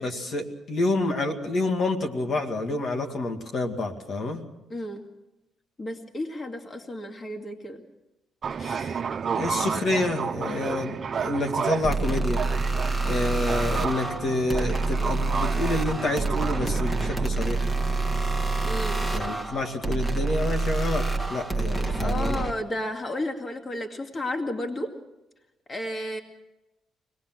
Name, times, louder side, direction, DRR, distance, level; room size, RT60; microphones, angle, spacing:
voice 1, 0.0-4.5 8.6-9.0 9.4-12.4 13.0-17.8 19.1-21.0 21.3-22.4, left 2 dB, 55° left, 4 dB, 2.4 m, -28 dB
voice 2, 4.7-5.0 5.8-7.8 18.6-19.1 22.0-24.9 25.7-26.2, left 1 dB, 35° left, 4 dB, 2.2 m, -32 dB
sound 1, 8.4-22.2, right 6 dB, 45° right, 0.6 m, -33 dB
sound 2, 11.8-22.5, right 3 dB, 10° left, 1.7 m, -27 dB
25.0 x 19.0 x 6.2 m, 0.97 s
cardioid pair, 90°, 0 cm